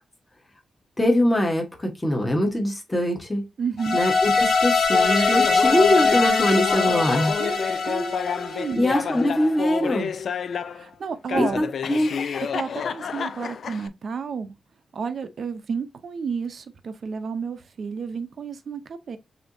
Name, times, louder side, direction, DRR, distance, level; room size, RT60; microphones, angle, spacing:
voice 1, 1.0-3.4 3.9-7.3 8.8-10.1 11.3-12.1, left 1 dB, 10° left, 1.2 m, -23 dB
voice 2, 3.6-4.0 7.4-8.8 10.7-11.6 12.5-14.5 14.9-19.2, right 5 dB, 50° right, 0.6 m, -31 dB
sound 1, 3.8-9.0, left 4 dB, 85° left, 1.1 m, -22 dB
Laughter, 4.9-10.9 11.3-13.9, left 7 dB, 55° left, 0.4 m, -29 dB
6.8 x 2.8 x 2.6 m
wide cardioid pair, 165°, 0 cm